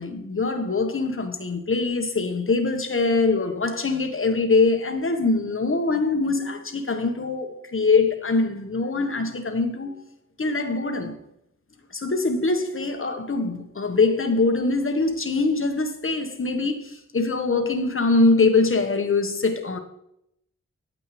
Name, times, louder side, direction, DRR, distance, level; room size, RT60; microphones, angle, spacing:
voice 1, 0.0-10.0 10.4-11.2 11.9-19.8, left 3 dB, 40° left, 1.4 m, -23 dB
9.0 x 8.5 x 3.3 m
cardioid pair, 50°, 31 cm